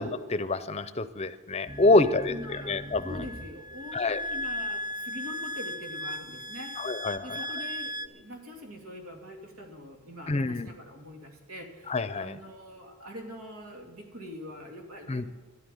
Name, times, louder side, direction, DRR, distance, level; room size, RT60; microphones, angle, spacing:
voice 1, 0.0-3.2 3.9-4.2 6.8-7.4 10.3-10.7 11.9-12.4 15.1-15.3, left 2 dB, 30° left, 13 dB, 0.6 m, -27 dB
sound 1, 1.7-8.1, left 1 dB, 20° right, 0.6 m, -37 dB
voice 2, 2.0-2.8 3.0-7.0 7.2-15.3, left 1 dB, 85° right, 3 dB, 2.6 m, -44 dB
11.5 x 11.0 x 9.2 m, 1.3 s
head